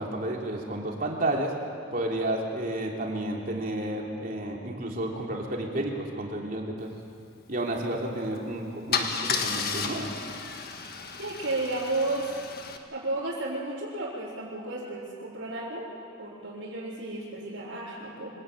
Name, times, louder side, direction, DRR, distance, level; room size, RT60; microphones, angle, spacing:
voice 1, 0.0-1.5 1.9-6.9 7.5-10.1, right 1 dB, 45° right, 0 dB, 3.2 m, -31 dB
Car / Engine starting / Idling, 8.2-8.4 8.9-12.8, left 5 dB, 50° left, 1.6 m, -32 dB
voice 2, 11.2-12.4 12.9-15.9 16.2-18.3, right 2 dB, 75° right, -9 dB, 4.1 m, -33 dB
24.5 x 17.0 x 9.0 m, 2.4 s
head